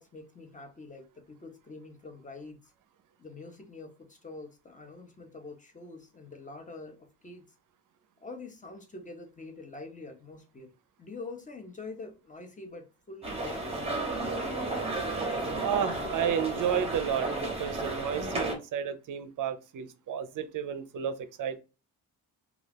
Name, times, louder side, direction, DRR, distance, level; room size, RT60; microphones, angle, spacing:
voice 1, 0.0-2.7 3.2-7.5 8.2-10.7 11.0-14.7, left 3 dB, 20° left, 0.5 m, -45 dB
sound 1, 13.2-18.5, right 2 dB, 15° right, 0.7 m, -33 dB
voice 2, 15.6-21.6, right 8 dB, 50° right, 0.5 m, -32 dB
2.3 x 2.3 x 3.3 m
cardioid pair, 135°, 41 cm